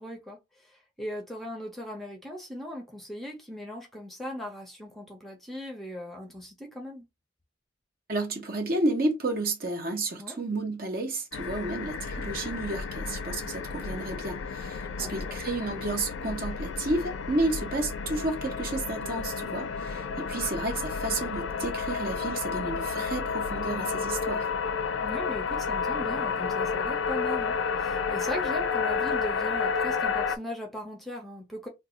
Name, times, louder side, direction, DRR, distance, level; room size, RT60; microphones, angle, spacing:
voice 1, 0.0-7.0 10.2-10.4 15.0-15.4 25.0-31.7, equal, ahead, 0.7 m, -39 dB
voice 2, 8.1-24.5, right 2 dB, 50° right, 0.8 m, -31 dB
sound 1, 11.3-30.4, left 5 dB, 75° left, 0.4 m, -31 dB
2.6 x 2.3 x 3.8 m
head